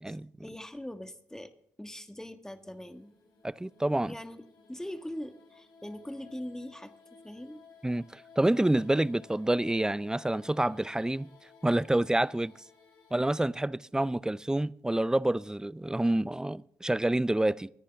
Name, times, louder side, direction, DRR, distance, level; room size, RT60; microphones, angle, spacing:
voice 1, 0.1-3.1 4.1-7.6, left 1 dB, 5° left, 1.6 m, -42 dB
sound 1, 2.4-13.4, left 5 dB, 70° left, 4.5 m, -58 dB
voice 2, 3.4-4.1 7.8-11.3 11.6-12.5 13.1-17.7, right 1 dB, 10° right, 0.5 m, -28 dB
27.5 x 10.0 x 3.5 m
hypercardioid pair, 50°, 8 cm